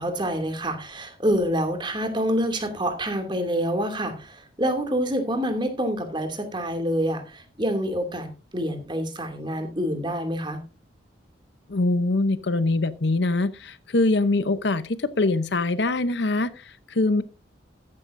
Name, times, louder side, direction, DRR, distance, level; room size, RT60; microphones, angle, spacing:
voice 1, 0.0-10.6, equal, 25° right, 6 dB, 2.5 m, -27 dB
voice 2, 11.7-17.2, left 2 dB, 65° left, 14 dB, 0.8 m, -23 dB
14.0 x 11.5 x 2.6 m, 0.30 s
head